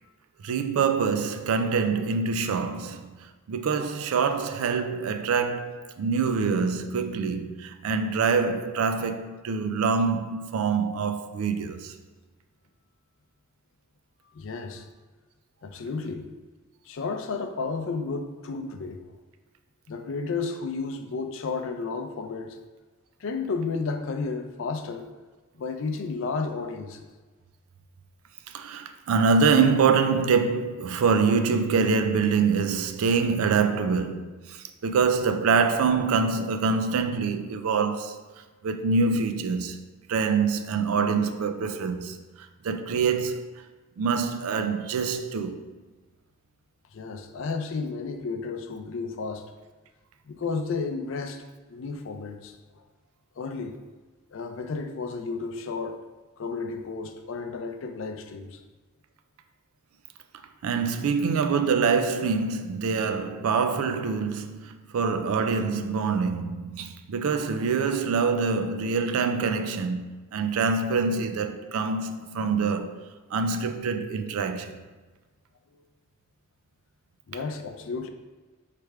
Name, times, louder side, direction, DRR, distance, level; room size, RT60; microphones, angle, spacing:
voice 1, 0.4-3.1 3.5-11.9 28.5-38.2 38.6-39.8 40.1-42.2 42.6-43.5 44.0-45.6 60.6-73.0 73.3-74.8, right 5 dB, 90° right, 0.4 m, -25 dB
voice 2, 14.3-14.9 15.6-16.3 16.9-19.0 19.9-22.6 23.2-25.1 25.5-27.1 46.9-49.5 50.3-51.4 51.7-52.5 53.4-53.7 54.3-56.0 56.4-58.6 75.7-75.8 77.3-78.1, left 4 dB, 65° left, 0.4 m, -32 dB
3.3 x 3.2 x 4.6 m
head